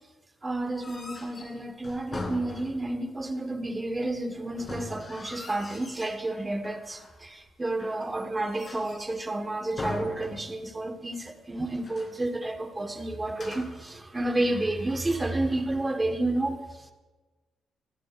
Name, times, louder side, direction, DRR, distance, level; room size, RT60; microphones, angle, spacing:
voice 1, 0.4-16.9, right 2 dB, 20° right, 1.5 m, -31 dB
sound 1, 0.6-3.1 4.5-6.2 6.6-7.2 7.8-9.2 9.8-10.9 11.1-11.2 11.7-12.2 13.3-13.9, left 2 dB, 35° left, 3.0 m, -41 dB
18.5 x 14.5 x 2.5 m
cardioid pair, 90°, 0 cm